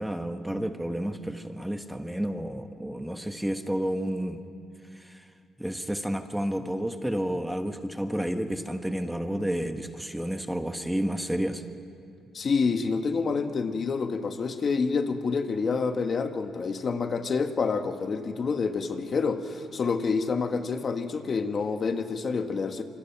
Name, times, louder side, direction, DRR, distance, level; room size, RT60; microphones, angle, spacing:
voice 1, 0.0-4.4 4.9-5.2 5.6-11.6, equal, 5° right, 7 dB, 1.3 m, -31 dB
voice 2, 12.3-22.8, left 4 dB, 45° left, 7 dB, 1.5 m, -28 dB
26.5 x 24.5 x 5.9 m, 2.4 s
cardioid pair, 90°, 0 cm